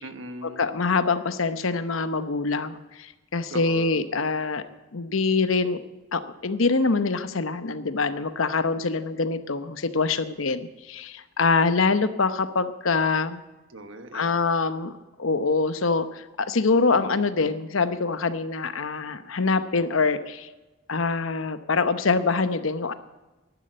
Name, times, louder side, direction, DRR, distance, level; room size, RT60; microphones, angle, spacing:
voice 1, 0.0-0.6 3.5-4.0 13.7-14.3, right 2 dB, 65° right, 8 dB, 1.3 m, -39 dB
voice 2, 0.6-4.6 4.9-5.8 6.1-13.4 14.1-20.5 20.9-22.9, left 4 dB, 75° left, 11 dB, 0.9 m, -24 dB
11.0 x 11.0 x 7.9 m, 1.1 s
head